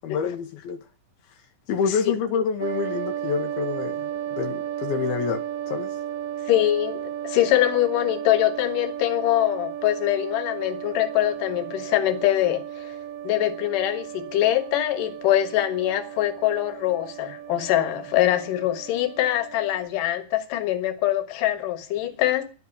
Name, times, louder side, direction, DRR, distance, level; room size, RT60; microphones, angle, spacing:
voice 1, 0.0-0.8 1.7-5.9, left 6 dB, 80° left, 2.8 m, -27 dB
sound 1, 2.6-19.9, right 11 dB, 65° right, 1.6 m, -34 dB
voice 2, 6.5-12.9 13.2-22.4, left 13 dB, 65° left, 2.9 m, -23 dB
11.0 x 8.0 x 9.9 m
omnidirectional pair, 4.3 m